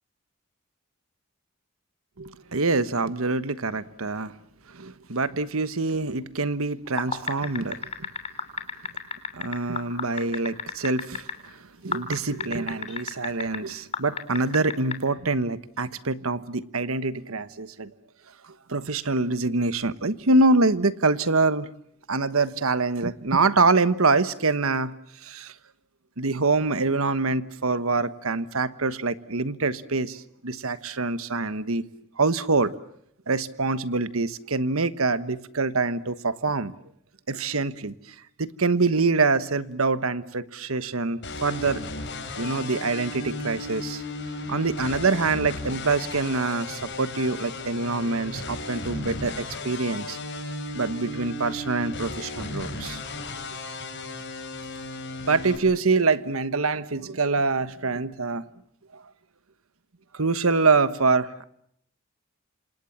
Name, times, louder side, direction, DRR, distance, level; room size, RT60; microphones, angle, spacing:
voice 1, 2.2-4.3 4.7-8.1 9.3-11.3 11.8-17.9 18.7-21.7 22.1-24.9 25.2-25.5 26.2-31.8 32.2-32.7 33.3-36.7 37.3-37.9 38.4-41.8 42.4-44.0 44.5-50.2 50.7-53.0 55.3-58.4 58.9-59.0 60.1-61.4, right 3 dB, 80° right, 1.3 m, -25 dB
sound 1, 6.9-11.3 11.9-13.6 13.9-15.0, left 5 dB, 30° left, 3.2 m, -30 dB
sound 2, 41.2-55.6, left 2 dB, 55° left, 6.6 m, -35 dB
27.5 x 27.0 x 7.3 m
head